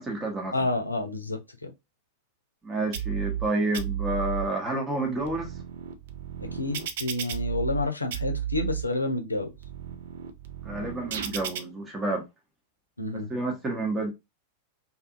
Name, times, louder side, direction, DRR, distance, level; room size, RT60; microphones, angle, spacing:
voice 1, 0.0-0.6 2.6-5.6 10.6-12.2 13.1-14.1, right 2 dB, 15° right, 0.8 m, -29 dB
voice 2, 0.5-1.7 6.4-9.5 13.0-13.3, left 2 dB, 85° left, 0.6 m, -29 dB
sound 1, 2.9-3.5 3.7-4.5 5.0-7.8 8.1-8.8 9.4-11.6, right 9 dB, 55° right, 0.4 m, -33 dB
2.6 x 2.5 x 2.5 m
figure-of-eight pair, 90°, 0 cm